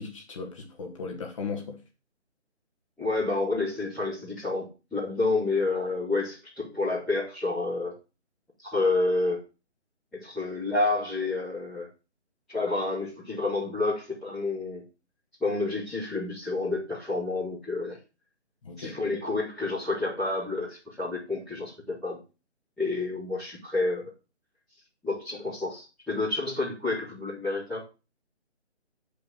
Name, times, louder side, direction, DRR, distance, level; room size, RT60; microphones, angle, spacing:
voice 1, 0.0-1.8 18.6-19.0, left 5 dB, 25° left, 2.0 m, -37 dB
voice 2, 3.0-7.9 8.6-9.4 10.1-11.9 12.5-14.8 15.4-18.0 18.8-22.2 22.8-24.1 25.0-27.8, left 3 dB, ahead, 0.7 m, -29 dB
9.4 x 5.3 x 6.5 m
figure-of-eight pair, 150°, 35 cm